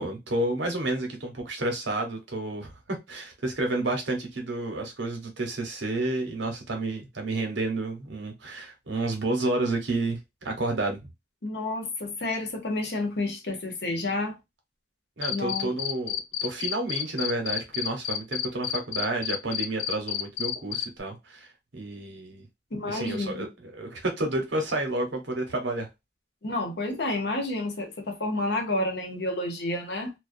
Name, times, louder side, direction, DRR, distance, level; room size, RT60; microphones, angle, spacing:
voice 1, 0.0-11.0 15.2-22.5 22.8-25.9, right 2 dB, 75° right, 0.9 m, -30 dB
voice 2, 11.4-14.4 15.3-15.7 22.7-23.5 26.4-30.1, left 2 dB, 65° left, 0.8 m, -30 dB
Cricket, 15.2-20.8, left 10 dB, 90° left, 0.3 m, -29 dB
2.4 x 2.2 x 2.5 m
head